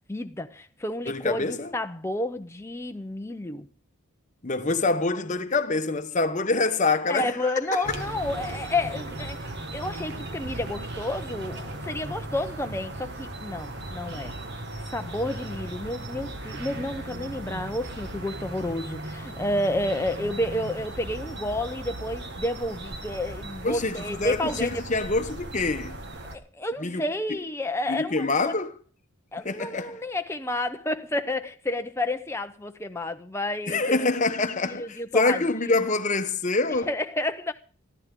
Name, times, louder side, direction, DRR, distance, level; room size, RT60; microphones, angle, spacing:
voice 1, 0.1-3.7 7.1-9.4 9.7-14.3 14.9-24.8 26.3-28.5 29.3-34.1 34.6-35.4 36.7-37.5, left 1 dB, 10° left, 0.6 m, -30 dB
voice 2, 1.1-1.7 4.4-8.0 23.6-26.0 26.8-27.0 27.9-28.7 29.4-30.0 33.7-36.9, left 3 dB, 35° left, 1.0 m, -26 dB
sound 1, 7.8-26.4, right 1 dB, 50° right, 1.6 m, -37 dB
20.5 x 14.0 x 3.7 m
head